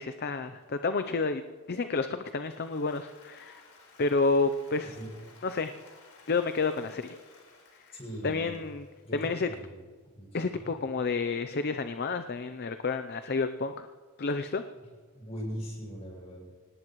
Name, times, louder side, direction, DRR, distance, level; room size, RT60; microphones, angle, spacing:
voice 1, 0.0-1.4 1.7-3.6 4.0-5.0 5.4-5.7 6.3-7.2 7.9-8.0 8.2-8.8 9.1-9.5 10.3-13.9 14.2-14.6, left 4 dB, 45° left, 9 dB, 0.6 m, -30 dB
Applause, 2.2-9.4, left 3 dB, 80° left, 4.4 m, -57 dB
voice 2, 7.9-8.6 9.0-9.7 10.1-10.8 14.7-14.8 15.1-16.4, equal, 30° left, -1 dB, 6.7 m, -40 dB
24.5 x 19.0 x 3.1 m, 1.6 s
head